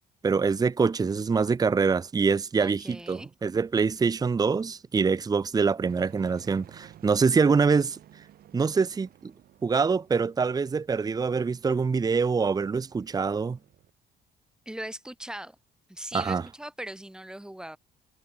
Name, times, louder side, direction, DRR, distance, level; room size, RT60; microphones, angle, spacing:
voice 1, 0.2-8.0 8.5-9.3 9.6-13.6 16.1-16.4, right 5 dB, 20° right, 0.9 m, -25 dB
voice 2, 2.6-3.3 14.7-15.6 15.9-17.8, right 1 dB, 5° right, 5.8 m, -39 dB
sound 1, 5.9-13.9, right 12 dB, 65° right, 5.6 m, -54 dB
cardioid pair, 110°, 17 cm